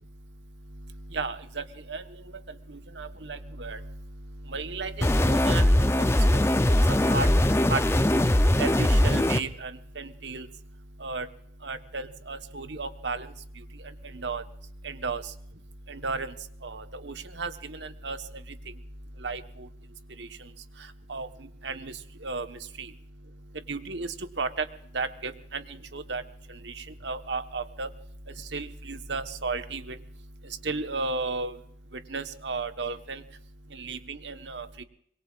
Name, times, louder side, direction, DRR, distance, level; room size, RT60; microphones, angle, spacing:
voice 1, 1.1-2.0 3.0-3.8 4.5-5.7 7.1-7.3 7.7-7.8 8.6-10.5 11.0-11.3 11.6-13.3 14.1-14.4 14.8-15.2 15.9-16.3 16.6-18.2 19.2-19.7 20.2-20.3 21.1-21.3 21.6-21.9 22.2-22.9 23.7-24.7 24.9-25.6 25.9-26.2 26.6-26.7 27.0-27.9 28.5-30.0 30.6-31.5 32.1-33.2 33.7-34.8, right 3 dB, 85° right, 9 dB, 1.2 m, -33 dB
sound 1, 5.0-9.4, left 1 dB, 15° left, 0.6 m, -21 dB
25.5 x 22.0 x 2.5 m, 0.66 s
head